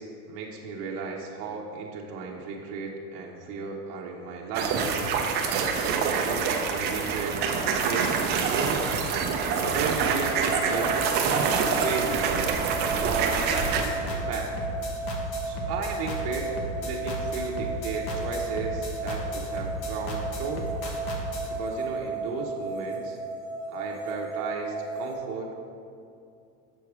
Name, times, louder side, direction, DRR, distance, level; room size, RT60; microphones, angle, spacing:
voice 1, 0.0-4.8 5.4-9.0 9.7-11.2 11.7-12.3 12.8-14.5 15.4-16.5 16.8-20.7 21.5-23.2 23.7-25.7, right 4 dB, 50° right, -1 dB, 0.9 m, -35 dB
sound 1, 4.5-13.9, right 5 dB, 25° right, 0.4 m, -26 dB
sound 2, 10.0-25.2, right 3 dB, 10° left, 0.9 m, -34 dB
sound 3, 13.6-21.5, right 1 dB, 55° left, 1.3 m, -35 dB
7.1 x 4.5 x 4.8 m, 2.5 s
supercardioid pair, 135°, 46 cm